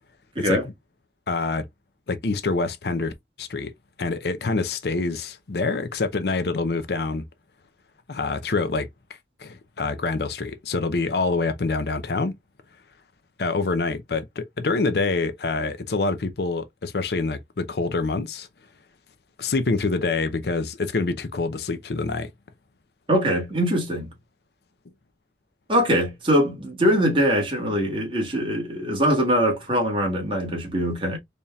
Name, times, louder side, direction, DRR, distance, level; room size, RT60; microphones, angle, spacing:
voice 1, 0.4-0.7 1.3-1.7 2.1-3.1 3.4-3.7 4.0-7.2 8.1-8.9 9.4-12.4 13.4-18.5 19.4-22.3, left 3 dB, 65° left, 0.6 m, -26 dB
voice 2, 23.1-24.1 25.7-31.2, equal, 30° right, 1.7 m, -22 dB
4.1 x 3.5 x 2.3 m
head